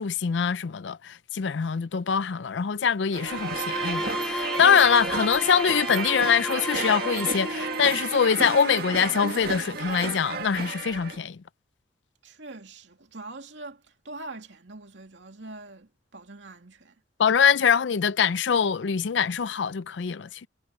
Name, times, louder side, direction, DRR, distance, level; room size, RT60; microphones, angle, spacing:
voice 1, 0.0-11.4 17.2-20.5, left 7 dB, 75° left, 0.5 m, -23 dB
sound 1, 3.1-11.2, right 4 dB, 55° right, 1.7 m, -32 dB
Bowed string instrument, 3.2-8.1, equal, 5° left, 2.5 m, -34 dB
voice 2, 12.2-16.9, right 2 dB, 80° right, 2.5 m, -43 dB
head